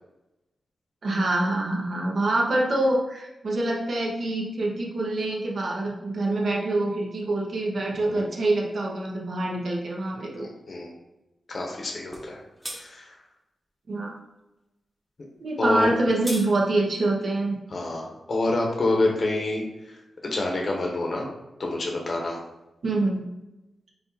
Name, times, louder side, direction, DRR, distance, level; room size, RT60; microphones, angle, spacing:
voice 1, 1.0-10.5 13.9-14.1 15.4-17.6 22.8-23.3, right 2 dB, 60° right, -2 dB, 1.0 m, -25 dB
voice 2, 10.1-10.9 11.5-12.4 12.8-13.1 15.6-15.9 17.7-19.6 20.2-21.3 21.6-22.4, left 2 dB, 50° left, 0 dB, 0.9 m, -27 dB
sound 1, 12.1-12.3 12.6-12.8 15.8-16.5, equal, 15° right, 0.9 m, -35 dB
4.7 x 2.5 x 4.0 m, 0.97 s
wide cardioid pair, 90°, 0 cm